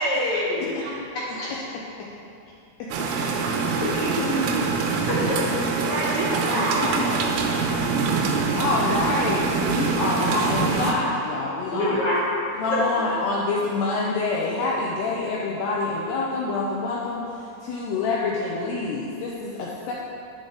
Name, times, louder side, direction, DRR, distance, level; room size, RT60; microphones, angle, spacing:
voice 1, 0.0-0.8 1.3-1.5 3.8-4.7 5.1-6.0 8.8-9.0 11.7-12.2 12.7-12.8, left 1 dB, 55° left, -9 dB, 2.2 m, -26 dB
voice 2, 0.8-1.3 5.7-7.2, right 2 dB, 70° right, -6 dB, 4.3 m, -28 dB
voice 3, 1.5-2.1 2.8-3.1 3.6-3.7 6.5-6.6 7.0-7.1 8.5-12.0 12.6-17.3 17.6-19.9, left 3 dB, 85° left, -4 dB, 2.4 m, -26 dB
sound 1, 2.9-10.9, right 4 dB, 90° right, 3.5 m, -24 dB
10.5 x 9.2 x 3.7 m, 2.6 s
omnidirectional pair, 5.7 m